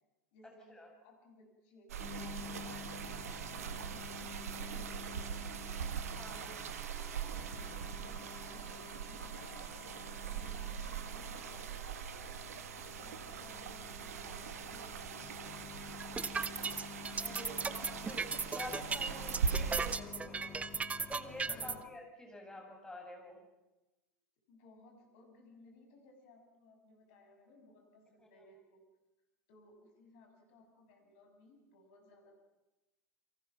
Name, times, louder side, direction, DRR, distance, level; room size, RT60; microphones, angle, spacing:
voice 1, 0.3-5.6 6.3-6.9 7.2-10.0 10.3-12.2 12.8-17.5 18.9-19.4 21.4-22.0 24.5-28.8 29.5-32.4, left 2 dB, 55° left, 4 dB, 6.8 m, -61 dB
sound 1, 1.9-20.0, right 7 dB, 65° right, 1.5 m, -41 dB
sound 2, 2.0-21.8, left 6 dB, 25° left, 2.9 m, -51 dB
voice 2, 6.1-6.5 17.2-20.6 21.1-23.4, left 1 dB, 10° left, 1 dB, 7.9 m, -48 dB
sound 3, 16.0-21.7, right 4 dB, 15° right, 1.0 m, -36 dB
30.0 x 23.5 x 6.1 m, 1.0 s
figure-of-eight pair, 80°, 9 cm